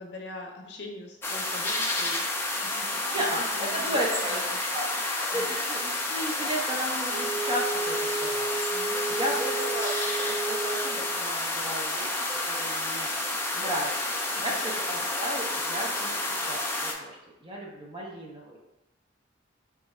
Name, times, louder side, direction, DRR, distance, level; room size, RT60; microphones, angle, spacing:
voice 1, 0.0-4.6 5.3-5.5 8.7-9.3 14.4-14.6, left 1 dB, 60° left, 1 dB, 0.6 m, -43 dB
sound 1, 1.2-16.9, left 2 dB, 10° left, 0.3 m, -30 dB
voice 2, 3.7-4.4 4.7-4.8 5.2-8.6 9.1-13.1 13.5-14.0 14.4-18.6, equal, 25° right, -2 dB, 0.7 m, -34 dB
Wind instrument woodwind instrument, 7.1-11.3, right 3 dB, 80° right, 0.7 m, -33 dB
3.3 x 2.4 x 4.1 m, 0.96 s
head